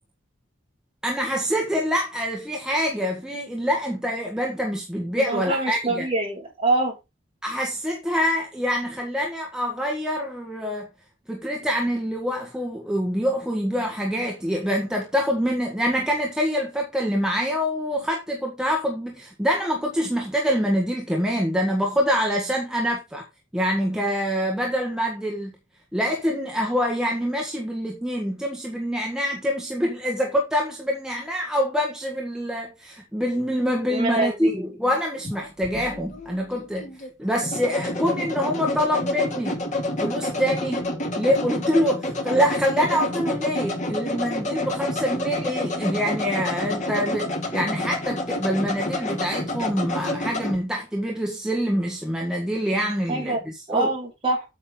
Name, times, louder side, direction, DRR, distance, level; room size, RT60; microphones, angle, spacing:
voice 1, 1.0-6.1 7.4-10.9 11.3-23.3 23.5-25.5 25.9-36.9 37.2-39.6 40.0-40.9 41.1-53.9, equal, 5° right, 1.5 m, -25 dB
voice 2, 5.1-6.9 33.9-34.7 53.1-53.4 53.7-54.4, right 2 dB, 30° right, 5.9 m, -25 dB
sound 1, 35.2-50.6, left 1 dB, 40° left, 2.4 m, -29 dB
8.7 x 7.7 x 3.9 m
head